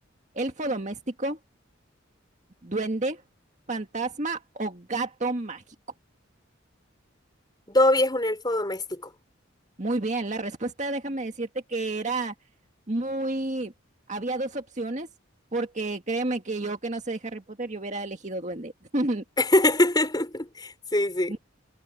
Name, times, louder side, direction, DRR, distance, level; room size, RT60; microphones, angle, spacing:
voice 1, 0.3-1.4 2.6-3.2 3.7-5.6 9.8-12.3 12.9-13.7 14.1-15.1 15.5-19.2 21.3-21.4, right 2 dB, 35° right, 1.8 m, -30 dB
voice 2, 7.7-9.0 19.4-21.3, left 1 dB, 20° left, 5.5 m, -23 dB
head